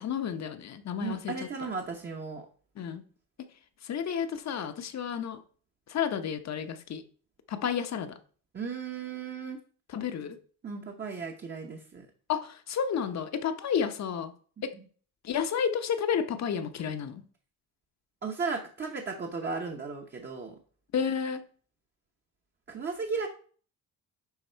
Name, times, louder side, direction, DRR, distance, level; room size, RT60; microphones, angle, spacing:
voice 1, 0.0-1.3 2.8-3.0 3.8-5.4 5.9-7.0 7.5-8.2 9.9-10.4 12.3-14.3 14.6-14.7 15.2-17.2 20.9-21.4, left 7 dB, 50° left, 0.8 m, -31 dB
voice 2, 1.0-2.5 8.5-9.6 10.6-12.1 18.2-20.5 22.7-23.3, right 5 dB, 30° right, 0.9 m, -35 dB
10.5 x 3.6 x 4.4 m
cardioid pair, 135°, 36 cm